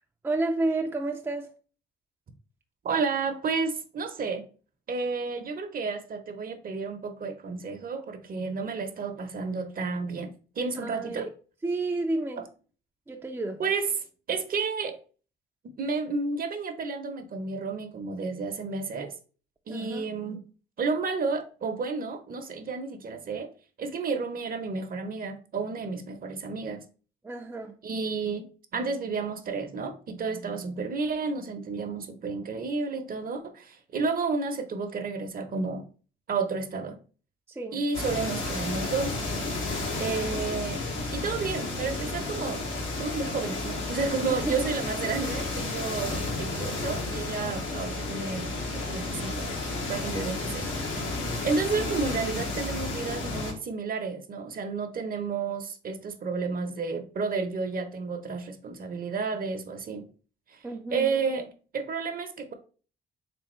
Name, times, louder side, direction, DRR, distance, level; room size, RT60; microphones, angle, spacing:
voice 1, 0.2-1.5 10.8-11.2 11.6-12.5 13.1-13.6 19.7-20.1 27.2-27.8 37.5-37.8 44.4-44.7 60.6-61.1, right 2 dB, 10° right, 0.4 m, -31 dB
voice 2, 2.8-4.4 4.9-10.3 10.6-11.3 12.4-12.5 13.6-13.8 14.3-15.0 15.8-19.1 19.7-20.4 20.8-23.5 23.8-26.8 27.8-35.8 36.3-37.0 37.7-39.2 40.0-40.8 41.1-42.6 43.0-49.6 49.9-50.7 51.4-60.1 60.5-62.5, right 4 dB, 45° right, 0.7 m, -31 dB
sound 1, 37.9-53.5, left 2 dB, 85° left, 1.4 m, -32 dB
3.6 x 3.4 x 3.0 m
cardioid pair, 90°, 20 cm